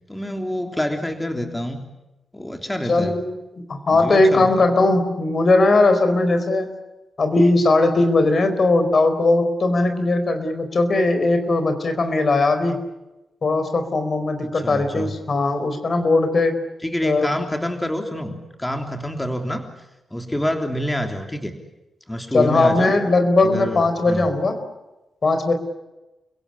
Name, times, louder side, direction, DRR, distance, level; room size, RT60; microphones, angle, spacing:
voice 1, 0.1-1.8 2.3-3.1 4.0-4.6 14.4-15.1 16.8-19.7 20.1-21.5 22.1-22.9 23.4-24.3, equal, 10° left, 5 dB, 3.4 m, -27 dB
voice 2, 2.9-3.3 3.7-6.7 7.2-12.8 13.4-16.6 17.0-17.3 22.3-24.6 25.2-25.5, left 2 dB, 50° left, 8 dB, 4.5 m, -19 dB
30.0 x 17.0 x 9.8 m, 1.0 s
cardioid pair, 60°, 0 cm